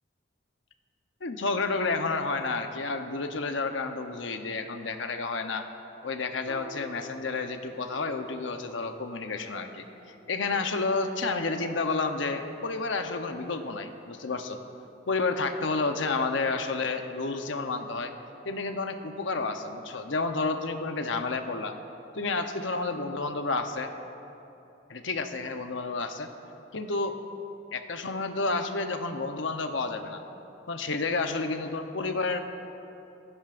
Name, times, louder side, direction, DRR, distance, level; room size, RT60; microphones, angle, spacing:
voice 1, 1.2-5.7 6.0-9.9 10.3-14.6 15.1-18.1 18.4-21.8 22.1-23.9 24.9-26.3 26.7-27.2 27.7-30.2 30.7-32.4, left 3 dB, 85° left, 6 dB, 0.9 m, -30 dB
Piano, 6.5-12.8, right 1 dB, 50° right, 2.5 m, -51 dB
19.0 x 15.5 x 2.6 m, 2.9 s
head